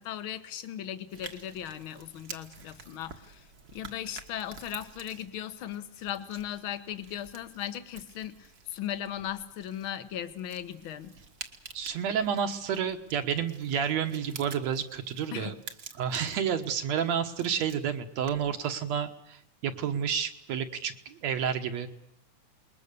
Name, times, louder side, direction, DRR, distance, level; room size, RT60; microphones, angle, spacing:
voice 1, 0.0-3.5 3.7-11.1 15.3-15.5, left 10 dB, 55° left, 10 dB, 1.6 m, -37 dB
sound 1, 1.1-18.6, right 5 dB, 40° right, 1.4 m, -49 dB
voice 2, 11.7-15.5 16.0-21.9, right 8 dB, 65° right, 7 dB, 2.4 m, -30 dB
28.0 x 21.5 x 6.9 m, 0.76 s
omnidirectional pair, 3.5 m